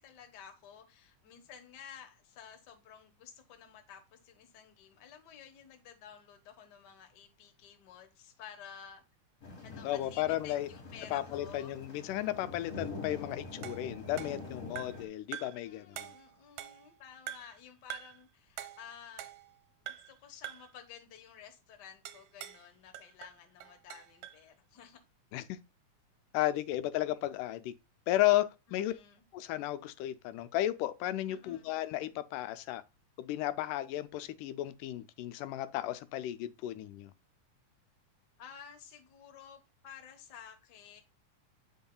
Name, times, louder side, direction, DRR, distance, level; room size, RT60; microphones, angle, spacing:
voice 1, 0.0-9.0 9.6-11.8 15.4-19.3 19.8-25.0 27.1-27.2 28.7-29.2 31.3-31.7 38.4-41.0, left 8 dB, 65° left, 1.0 m, -53 dB
sound 1, 9.4-15.1, left 3 dB, 45° left, 1.0 m, -45 dB
voice 2, 9.8-10.7 11.1-16.1 25.3-25.6 26.3-27.7 28.1-28.9 29.3-32.8 33.2-37.1, left 14 dB, 85° left, 2.1 m, -34 dB
sound 2, 13.6-15.1 15.3-15.7 16.0-16.9 17.3-17.6 17.9-18.2 18.6-19.6 19.9-20.2 20.4-20.8 22.1-22.7 22.9-24.4, right 11 dB, 75° right, 1.9 m, -45 dB
8.6 x 5.4 x 2.2 m
omnidirectional pair, 3.7 m